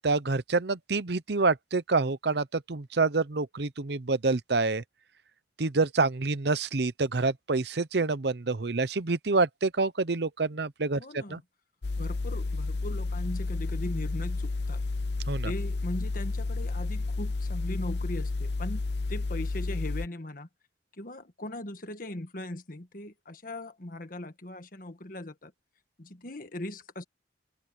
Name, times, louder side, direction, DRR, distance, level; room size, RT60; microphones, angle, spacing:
voice 1, 0.0-4.8 5.6-11.4 15.3-15.5, right 3 dB, 65° right, 0.8 m, -27 dB
voice 2, 11.0-11.4 12.0-14.8 15.4-18.8 19.1-20.5 20.9-25.5 26.0-27.0, left 1 dB, 50° left, 1.6 m, -39 dB
sound 1, 11.8-20.1, left 3 dB, 65° left, 0.7 m, -31 dB
head